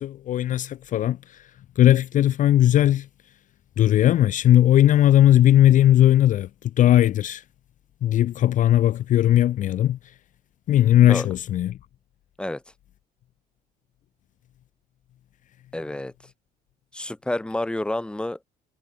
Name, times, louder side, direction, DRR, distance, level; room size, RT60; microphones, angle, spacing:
voice 1, 0.0-1.5 1.8-3.1 3.8-7.4 8.0-10.0 10.7-11.8, left 12 dB, 50° left, 0.5 m, -18 dB
voice 2, 15.7-16.1 16.9-18.4, left 1 dB, 5° left, 1.0 m, -29 dB
cardioid pair, 110°, 17 cm